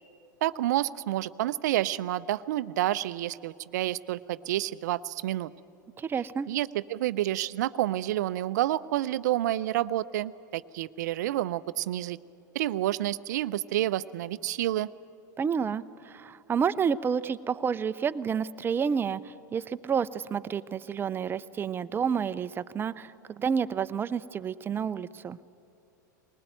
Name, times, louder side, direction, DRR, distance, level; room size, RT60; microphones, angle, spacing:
voice 1, 0.4-5.5 6.5-12.2 12.5-14.9, right 14 dB, 65° right, 16 dB, 0.5 m, -29 dB
voice 2, 6.0-6.5 15.4-25.4, right 7 dB, 20° right, 15 dB, 0.6 m, -30 dB
20.5 x 19.5 x 9.0 m, 2.6 s
hypercardioid pair, 90°, 10 cm